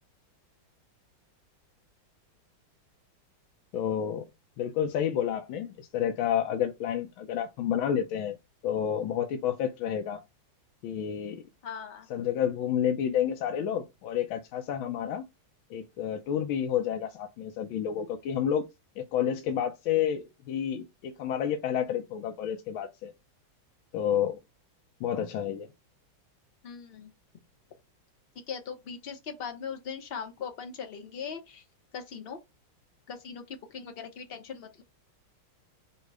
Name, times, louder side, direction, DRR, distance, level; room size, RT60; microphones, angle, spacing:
voice 1, 3.7-4.2 4.6-8.4 8.6-10.2 10.8-11.4 12.1-15.2 15.7-18.7 19.0-23.1 23.9-24.4 25.0-25.7, left 9 dB, 80° left, 1.5 m, -30 dB
voice 2, 11.6-12.1 26.6-27.1 28.5-31.6 31.9-32.4 33.1-34.8, left 6 dB, 55° left, 0.6 m, -40 dB
5.3 x 2.1 x 4.7 m
omnidirectional pair, 2.3 m